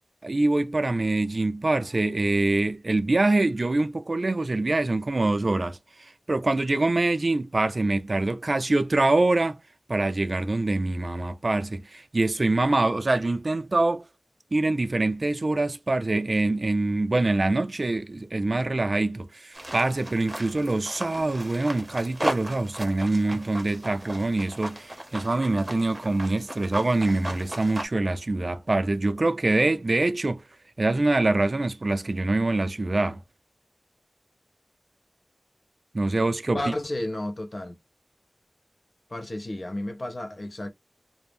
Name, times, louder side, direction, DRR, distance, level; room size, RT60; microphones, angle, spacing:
voice 1, 0.2-9.6 9.9-14.0 14.5-30.4 30.8-33.2 35.9-36.6, right 2 dB, 55° right, 0.4 m, -24 dB
sound 1, 19.5-27.8, right 1 dB, 25° right, 0.7 m, -36 dB
voice 2, 36.5-37.8 39.1-40.7, left 1 dB, 50° left, 0.6 m, -32 dB
2.5 x 2.0 x 3.2 m
wide cardioid pair, 70°, 0 cm